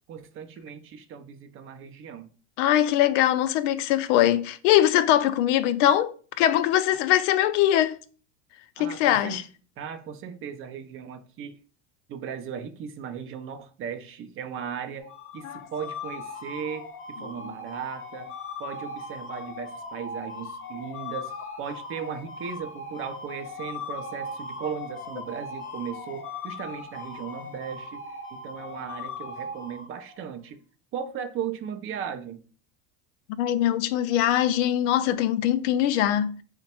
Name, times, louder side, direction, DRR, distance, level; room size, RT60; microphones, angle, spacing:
voice 1, 0.1-2.3 8.8-9.4 9.8-11.6 12.1-18.3 18.6-28.1 28.3-30.6 30.9-32.4, right 7 dB, 35° right, 0.4 m, -37 dB
voice 2, 2.6-8.0 8.8-9.4 15.4-15.6 17.4-17.5 33.4-36.4, left 12 dB, 75° left, 0.5 m, -22 dB
sound 1, 15.0-30.3, left 3 dB, 35° left, 0.7 m, -39 dB
3.2 x 2.1 x 4.2 m
supercardioid pair, 110°, 36 cm